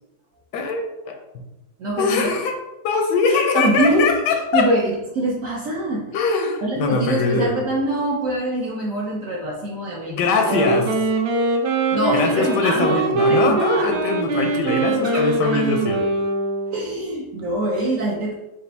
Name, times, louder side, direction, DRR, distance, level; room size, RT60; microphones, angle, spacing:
voice 1, 0.5-1.4 2.0-2.6 2.8-4.7 6.1-7.5 10.1-11.0 12.1-16.0, left 4 dB, 85° left, 4 dB, 1.2 m, -22 dB
voice 2, 1.8-2.4 3.3-6.1 6.6-10.5 11.9-14.0 15.0-15.3 15.5-15.6 16.7-18.3, right 1 dB, 65° right, -4 dB, 0.9 m, -24 dB
Wind instrument woodwind instrument, 10.3-16.9, right 2 dB, 80° right, 1.2 m, -22 dB
5.0 x 2.4 x 3.3 m, 0.99 s
omnidirectional pair, 1.8 m